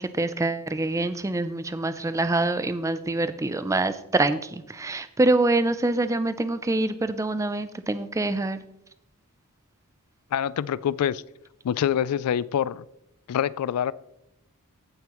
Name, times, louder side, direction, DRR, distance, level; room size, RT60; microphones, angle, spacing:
voice 1, 0.0-8.6, right 2 dB, 15° right, 12 dB, 0.4 m, -25 dB
voice 2, 10.3-11.2 11.6-12.8 13.3-13.9, left 9 dB, 90° left, 19 dB, 0.3 m, -25 dB
15.5 x 5.6 x 3.0 m, 0.81 s
head